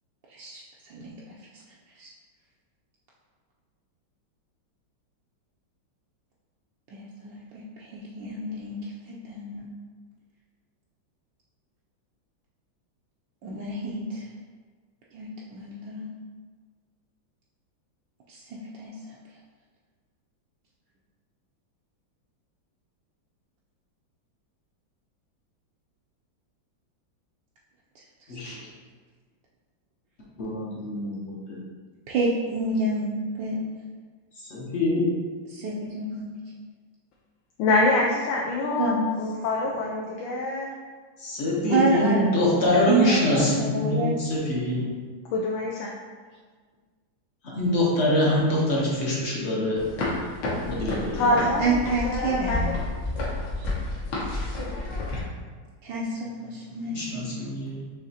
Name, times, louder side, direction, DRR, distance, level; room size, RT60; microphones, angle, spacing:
voice 1, 0.3-1.1 2.0-2.1 6.9-9.7 13.4-14.2 15.1-16.1 18.3-18.4 18.7-19.1 32.1-33.1 33.4-33.6 35.5-36.3 38.8-39.0 41.7-42.3 42.9-44.1 51.2-51.3 51.6-52.6 53.5-53.7 55.8-57.3, right 3 dB, 75° right, -5 dB, 1.2 m, -28 dB
voice 2, 30.4-31.6 34.4-35.1 41.2-44.9 47.5-49.8 50.6-51.2 56.9-57.8, left 1 dB, 50° left, -5 dB, 0.8 m, -24 dB
voice 3, 37.6-40.7 45.3-45.9 51.2-52.7, left 2 dB, 80° left, -3 dB, 1.4 m, -25 dB
sound 1, 49.8-55.2, left 2 dB, 65° left, 1.5 m, -30 dB
6.4 x 2.9 x 2.7 m, 1.5 s
omnidirectional pair, 2.2 m